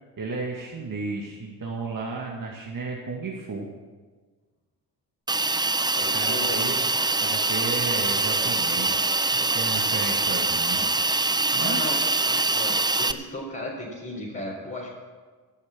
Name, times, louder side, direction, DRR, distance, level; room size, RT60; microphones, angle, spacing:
voice 1, 0.2-3.7 6.1-6.9 7.2-10.8 11.5-11.9, right 3 dB, 40° right, -1 dB, 2.1 m, -33 dB
Hiss, 5.3-13.1, right 3 dB, 10° right, 0.6 m, -24 dB
voice 2, 5.9-6.6 11.6-14.9, left 1 dB, 25° left, -7 dB, 4.6 m, -35 dB
13.5 x 6.7 x 8.7 m, 1.5 s
hypercardioid pair, 45°, 48 cm